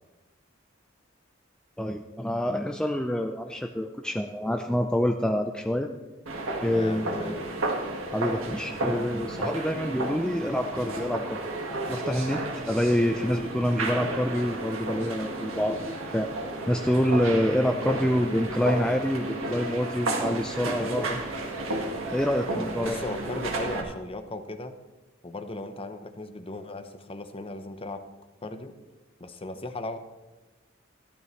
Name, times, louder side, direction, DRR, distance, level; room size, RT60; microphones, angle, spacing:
voice 1, 1.8-5.9 6.6-7.3 8.1-11.4 11.9-16.3 16.7-21.2 22.1-23.0, equal, 5° left, 4 dB, 0.4 m, -27 dB
sound 1, 6.3-23.8, right 2 dB, 80° right, 1.7 m, -32 dB
voice 2, 6.7-7.5 22.8-24.7 25.2-28.0 28.4-28.7 29.2-30.0, left 2 dB, 30° left, 9 dB, 0.7 m, -37 dB
13.5 x 12.0 x 3.2 m, 1.2 s
head